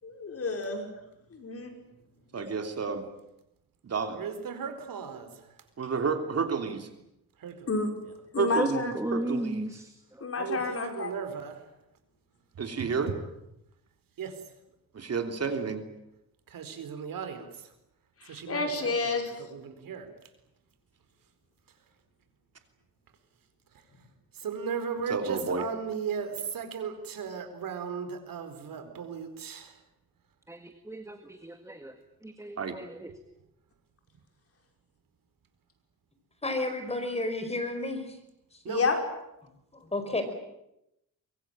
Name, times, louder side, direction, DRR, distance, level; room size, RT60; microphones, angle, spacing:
voice 1, 0.0-0.9 1.3-1.7 2.4-2.5 7.7-7.9 8.3-8.9 10.2-11.1 18.2-19.3 38.7-39.0, left 4 dB, 40° left, 4 dB, 5.5 m, -30 dB
voice 2, 2.3-3.0 3.8-4.2 5.8-6.9 8.4-9.7 12.6-13.1 14.9-15.8 25.1-25.6 32.6-32.8, right 5 dB, 40° right, 6 dB, 3.2 m, -30 dB
voice 3, 4.1-5.6 7.4-7.7 10.4-11.7 12.5-12.9 14.2-14.5 16.5-17.7 18.2-20.1 23.7-23.8 24.3-29.8 38.6-38.8, right 6 dB, 60° right, 9 dB, 4.4 m, -37 dB
voice 4, 9.0-9.9 30.5-31.9 32.2-33.1, right 1 dB, 10° right, 7 dB, 1.9 m, -35 dB
voice 5, 36.4-38.2 39.7-40.2, left 2 dB, 15° left, 8 dB, 5.1 m, -31 dB
24.5 x 23.0 x 8.9 m, 0.85 s
cardioid pair, 125°, 37 cm